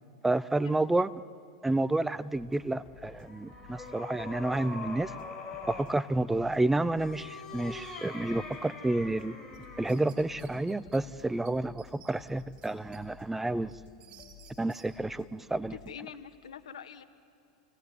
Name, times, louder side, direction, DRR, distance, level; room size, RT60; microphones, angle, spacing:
voice 1, 0.2-1.1 1.6-5.1 5.7-9.4 9.8-13.7 14.6-15.7, right 2 dB, 10° right, 16 dB, 0.6 m, -30 dB
sound 1, 2.3-16.0, left 8 dB, 40° left, 3.3 m, -55 dB
sound 2, 3.0-5.9 6.9-10.0, left 3 dB, 20° left, 5.3 m, -43 dB
sound 3, 9.5-11.0 11.5-11.6 11.8-13.0 13.4-14.9, right 9 dB, 40° right, 4.7 m, -56 dB
voice 2, 15.7-17.1, left 8 dB, 90° left, 11 dB, 1.4 m, -45 dB
28.5 x 18.0 x 9.6 m, 2.3 s
hypercardioid pair, 115°, 3 cm